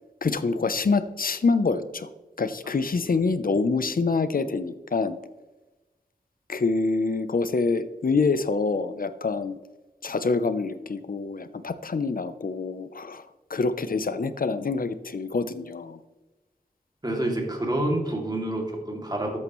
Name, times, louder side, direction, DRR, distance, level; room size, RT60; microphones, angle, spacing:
voice 1, 0.2-2.1 2.4-5.2 6.5-9.6 10.0-13.2 13.5-16.0, left 4 dB, 60° left, 12 dB, 0.7 m, -26 dB
voice 2, 17.0-19.4, right 1 dB, 25° right, 0 dB, 2.6 m, -28 dB
13.0 x 8.8 x 3.1 m, 1.1 s
wide cardioid pair, 80°, 16 cm